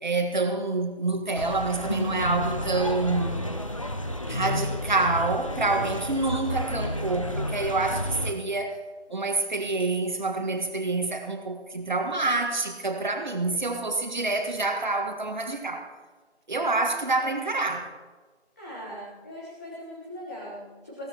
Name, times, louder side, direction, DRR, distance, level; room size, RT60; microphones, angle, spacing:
voice 1, 0.0-3.5 4.3-8.8 9.1-15.9 16.5-17.9, right 3 dB, 45° right, 1.7 m, -27 dB
sound 1, 1.3-8.3, left 1 dB, 30° left, 0.7 m, -31 dB
voice 2, 18.6-21.1, equal, 15° left, 1.3 m, -40 dB
22.0 x 16.0 x 3.0 m
figure-of-eight pair, 160°, 33 cm